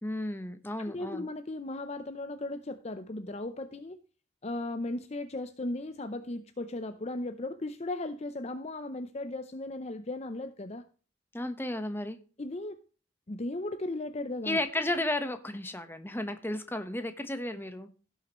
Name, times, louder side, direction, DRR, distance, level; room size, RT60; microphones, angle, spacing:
voice 1, 0.0-1.3 11.3-12.2 14.4-17.9, left 1 dB, 10° left, 8 dB, 1.0 m, -33 dB
voice 2, 0.8-4.0 4.4-10.8 12.4-12.8 13.3-14.6, left 2 dB, 35° left, 10 dB, 0.6 m, -36 dB
16.5 x 6.4 x 3.0 m, 0.37 s
head